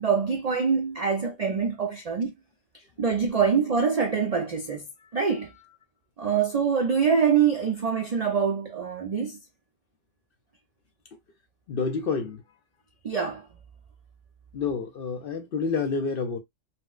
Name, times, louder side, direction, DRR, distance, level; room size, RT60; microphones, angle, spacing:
voice 1, 0.0-2.3 3.0-4.9 5.1-5.5 6.2-9.4 13.0-13.5, right 6 dB, 60° right, 0.4 m, -24 dB
voice 2, 11.7-12.4 14.5-16.4, left 4 dB, 60° left, 0.6 m, -29 dB
4.1 x 2.1 x 2.3 m
omnidirectional pair, 1.3 m